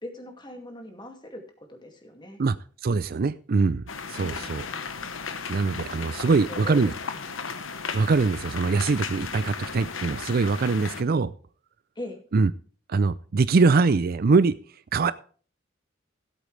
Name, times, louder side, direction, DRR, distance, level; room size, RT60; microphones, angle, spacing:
voice 1, 0.0-2.4 4.2-4.5 5.9-6.9 12.0-12.2, left 1 dB, 25° left, 4 dB, 2.3 m, -41 dB
voice 2, 2.8-4.6 5.5-6.9 7.9-11.3 12.3-12.5 12.9-14.5 14.9-15.1, right 4 dB, 50° right, 16 dB, 0.4 m, -23 dB
sound 1, 3.9-11.0, left 5 dB, 80° left, 1.1 m, -35 dB
17.0 x 8.2 x 3.3 m, 0.41 s
head